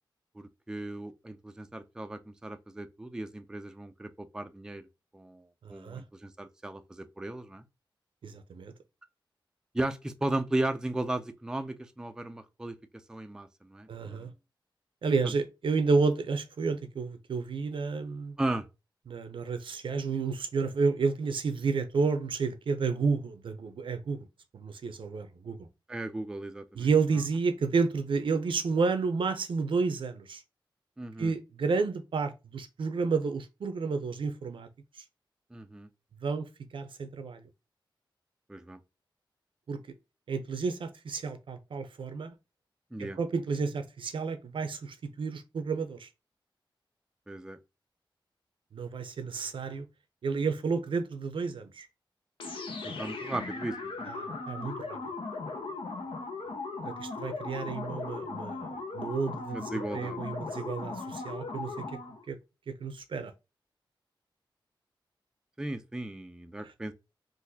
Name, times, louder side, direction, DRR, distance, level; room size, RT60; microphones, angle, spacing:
voice 1, 0.4-4.8 5.1-5.4 5.7-7.6 9.7-12.8 13.1-14.3 15.2-15.3 18.4-18.7 25.9-26.9 31.0-31.3 35.5-35.9 38.5-38.8 42.9-43.2 47.3-47.6 52.8-54.1 59.5-60.4 65.6-66.9, right 1 dB, 10° right, 0.3 m, -36 dB
voice 2, 8.2-8.7 13.9-14.3 15.0-18.4 19.1-24.2 24.5-25.7 26.7-30.4 31.2-34.7 36.2-36.4 36.7-37.4 39.7-39.8 40.3-42.3 43.0-46.1 48.7-49.8 50.2-51.9 54.1-55.0 56.8-61.7 62.3-62.4 62.7-63.3, right 4 dB, 75° right, 0.6 m, -31 dB
sound 1, 52.4-62.2, left 3 dB, 85° left, 0.9 m, -38 dB
3.8 x 2.6 x 2.6 m
wide cardioid pair, 120°, 9 cm